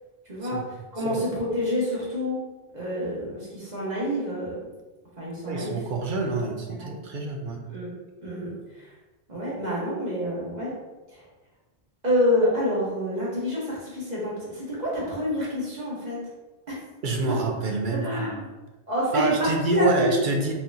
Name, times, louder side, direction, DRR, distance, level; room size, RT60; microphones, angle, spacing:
voice 1, 0.3-0.6 0.9-2.4 2.7-4.6 5.2-5.8 6.7-6.9 7.7-7.9 8.2-8.5 9.3-10.7 12.0-16.2 17.3-17.4 17.9-18.5 18.9-20.1, equal, 40° right, -6 dB, 1.5 m, -27 dB
voice 2, 5.5-7.6 17.0-18.4 19.1-20.5, right 3 dB, 55° right, 2 dB, 0.7 m, -27 dB
4.1 x 3.7 x 2.8 m, 1.2 s
omnidirectional pair, 1.1 m